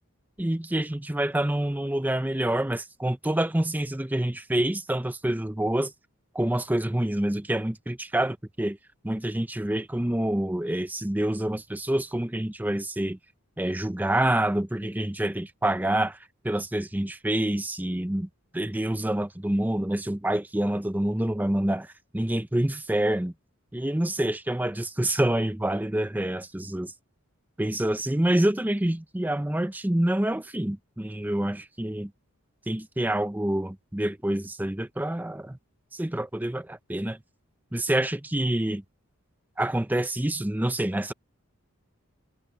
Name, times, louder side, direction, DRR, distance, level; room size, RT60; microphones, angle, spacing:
voice 1, 0.4-5.9 6.3-8.8 9.0-13.2 13.6-16.2 16.4-23.3 23.7-26.9 27.6-32.1 32.7-35.6 35.9-37.2 37.7-38.8 39.6-41.1, right 1 dB, 10° right, 0.5 m, -27 dB
head